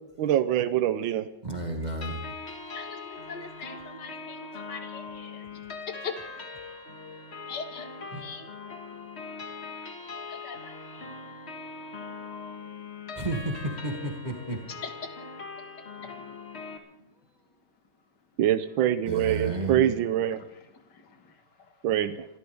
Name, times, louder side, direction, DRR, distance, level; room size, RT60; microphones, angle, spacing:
voice 1, 0.2-1.3 18.4-20.4 21.8-22.3, right 11 dB, 90° right, 12 dB, 1.5 m, -24 dB
voice 2, 1.4-2.3 6.9-7.3 8.1-8.2 8.9-9.8 11.1-11.3 11.6-12.5 13.2-14.7 19.0-19.8, right 2 dB, 20° right, 1 dB, 2.3 m, -34 dB
sound 1, 2.0-16.8, left 4 dB, 35° left, 1.9 m, -41 dB
voice 3, 2.7-5.6 5.9-6.1 7.5-8.7 10.3-11.4 14.7-14.9 16.0-16.4 20.3-22.1, left 6 dB, 60° left, 7 dB, 2.3 m, -42 dB
28.5 x 13.5 x 3.5 m, 0.89 s
omnidirectional pair, 2.1 m